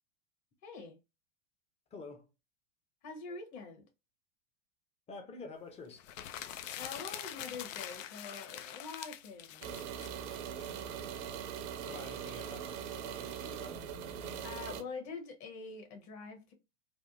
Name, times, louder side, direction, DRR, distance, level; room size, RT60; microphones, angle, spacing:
voice 1, 0.6-1.0 3.0-3.8 6.7-9.8 14.2-16.5, left 4 dB, 45° left, 1.2 m, -45 dB
voice 2, 1.9-2.3 5.1-6.1 11.8-13.9, left 3 dB, 15° left, 0.6 m, -48 dB
sound 1, 6.0-10.7, left 10 dB, 75° left, 0.5 m, -44 dB
sound 2, 9.6-14.8, right 8 dB, 65° right, 0.7 m, -41 dB
3.4 x 2.2 x 2.5 m
hypercardioid pair, 105°, 39 cm